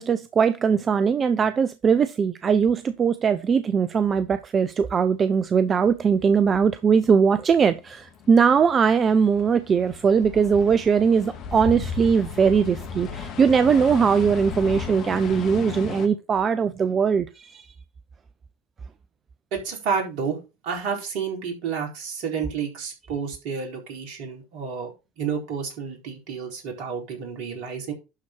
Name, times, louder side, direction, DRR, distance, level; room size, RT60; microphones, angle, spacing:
voice 1, 0.0-17.7, right 6 dB, 35° right, 0.7 m, -20 dB
sound 1, 7.0-16.1, left 6 dB, 50° left, 1.8 m, -35 dB
voice 2, 19.5-20.4 20.6-27.9, right 6 dB, 60° right, 4.2 m, -30 dB
11.5 x 4.4 x 4.6 m
hypercardioid pair, 75°, 0 cm